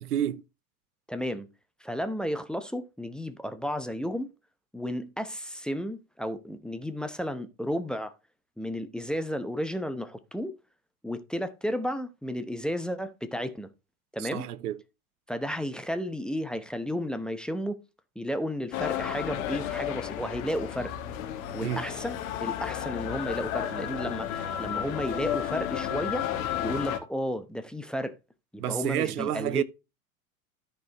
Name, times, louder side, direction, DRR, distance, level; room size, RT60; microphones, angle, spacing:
voice 1, 0.1-0.4 14.2-14.8 21.6-21.8 28.6-29.6, right 11 dB, 80° right, 0.7 m, -29 dB
voice 2, 1.1-1.5 1.8-4.3 4.7-8.1 8.6-10.6 11.0-13.7 14.1-14.4 15.3-17.8 18.2-20.9 21.5-28.2 28.5-29.6, equal, ahead, 0.8 m, -33 dB
sound 1, 18.7-27.0, left 10 dB, 60° left, 1.5 m, -32 dB
13.0 x 4.6 x 3.4 m
hypercardioid pair, 90°, 45 cm